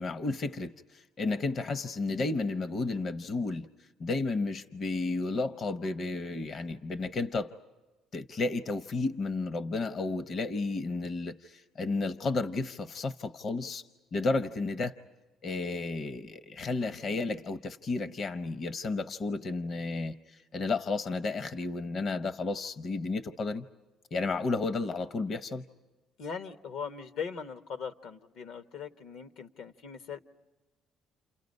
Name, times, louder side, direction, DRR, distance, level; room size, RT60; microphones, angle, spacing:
voice 1, 0.0-3.7 4.0-7.5 8.1-15.0 15.4-23.7 24.1-25.6, left 3 dB, 50° left, 12 dB, 0.7 m, -32 dB
voice 2, 26.2-30.2, left 6 dB, 80° left, 10 dB, 0.9 m, -40 dB
29.5 x 29.0 x 5.3 m, 1.1 s
cardioid pair, 90°, 0 cm